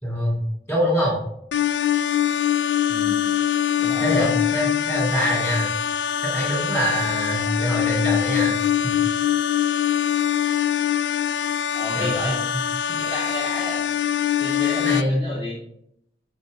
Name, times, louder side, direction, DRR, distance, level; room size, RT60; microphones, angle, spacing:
voice 1, 0.0-0.4 0.7-1.2 4.0-5.7 6.2-8.5 8.8-8.9 11.9-12.6 14.8-15.3, equal, 15° left, -5 dB, 3.5 m, -24 dB
sound 1, 1.5-15.0, left 10 dB, 90° left, 0.4 m, -23 dB
voice 2, 3.8-4.3 7.4-7.5 11.7-12.4 12.9-13.8 14.4-15.6, left 1 dB, 35° left, -9 dB, 2.9 m, -32 dB
8.6 x 6.0 x 4.0 m, 0.73 s
head